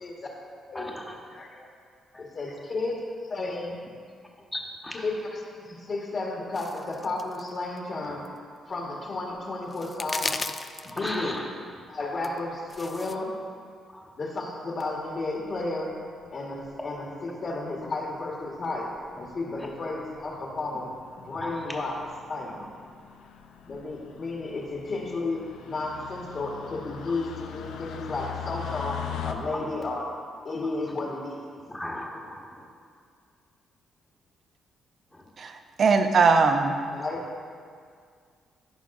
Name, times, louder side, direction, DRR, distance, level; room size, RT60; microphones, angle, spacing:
voice 1, 0.7-1.2 2.1-2.2 4.5-5.1 10.9-11.4 11.9-12.0 13.9-14.1 19.5-19.7 21.4-21.7 22.5-22.7 25.9-26.1 29.5-29.7 30.6-30.9 31.7-32.7 35.1-35.2, left 1 dB, 10° left, 0 dB, 1.2 m, -37 dB
voice 2, 1.3-1.7 2.3-2.9 3.3-3.8 5.0-5.1 5.5-8.2 8.7-10.3 10.8-11.4 11.9-13.3 14.1-16.0 16.3-17.0 17.4-20.9 21.2-21.9 22.2-22.6 23.6-30.0 30.4-31.4 36.9-37.2, left 2 dB, 45° left, -2 dB, 1.5 m, -32 dB
sound 1, 6.5-7.5 7.8-7.9 8.2-8.3 9.4-9.5 9.7-11.1 12.2-13.1, left 3 dB, 25° left, 0.3 m, -35 dB
sound 2, 15.2-15.7 16.6-17.0 17.9-18.0 18.2-18.3 18.5-18.6 19.0-19.3 19.7-19.9 20.2-29.3, left 9 dB, 80° left, 0.5 m, -41 dB
voice 3, 35.4-36.8, right 4 dB, 50° right, 6 dB, 0.6 m, -21 dB
14.0 x 5.2 x 2.6 m, 2.1 s
cardioid pair, 90°, 0 cm